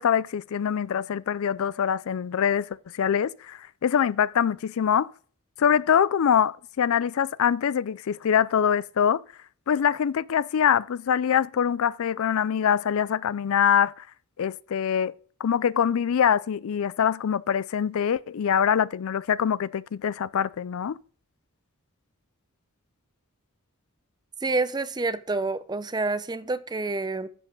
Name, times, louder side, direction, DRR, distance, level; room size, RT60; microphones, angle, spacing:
voice 1, 0.0-2.7 2.9-5.1 5.6-9.2 9.7-14.0 14.4-15.1 15.4-21.0, left 8 dB, 65° left, 0.4 m, -24 dB
voice 2, 24.4-27.3, right 3 dB, 20° right, 0.6 m, -28 dB
11.0 x 7.6 x 3.9 m
head